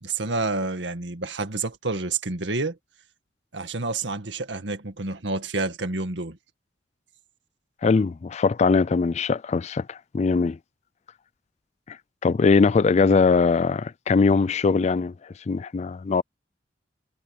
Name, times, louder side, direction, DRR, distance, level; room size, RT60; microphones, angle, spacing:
voice 1, 0.0-2.8 3.5-6.4, right 3 dB, 85° right, 1.9 m, -29 dB
voice 2, 7.8-10.6 11.9-12.0 12.2-15.1 15.5-16.2, left 4 dB, 40° left, 0.4 m, -21 dB
head